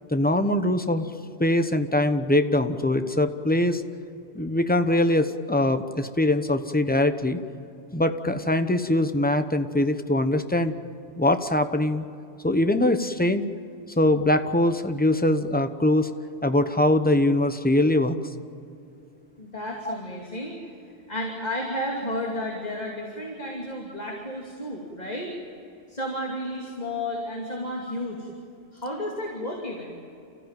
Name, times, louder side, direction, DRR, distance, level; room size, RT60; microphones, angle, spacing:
voice 1, 0.1-1.1 1.4-3.8 4.3-7.4 7.9-10.8 11.2-12.1 12.4-13.5 14.0-16.1 16.4-18.2 19.8-20.0, left 1 dB, 10° left, 8 dB, 0.9 m, -22 dB
voice 2, 19.4-20.6 21.1-25.3 25.9-28.3 28.7-30.0, left 1 dB, 35° left, -2 dB, 2.9 m, -32 dB
29.0 x 15.5 x 9.1 m, 2.6 s
omnidirectional pair, 1.3 m